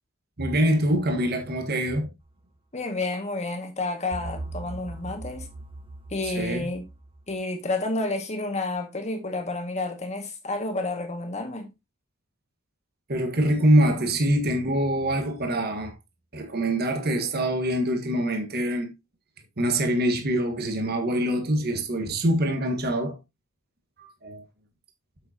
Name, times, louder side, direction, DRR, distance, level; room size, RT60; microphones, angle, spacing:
voice 1, 0.4-2.1 6.2-6.7 13.1-15.9 16.3-18.9 19.6-23.2 24.0-24.4, right 1 dB, 50° right, 1.6 m, -24 dB
voice 2, 2.7-5.5 6.1-6.8 7.3-11.7, left 2 dB, 35° left, 2.0 m, -30 dB
sound 1, 4.1-7.2, right 2 dB, 25° right, 1.0 m, -39 dB
8.1 x 7.6 x 2.9 m
head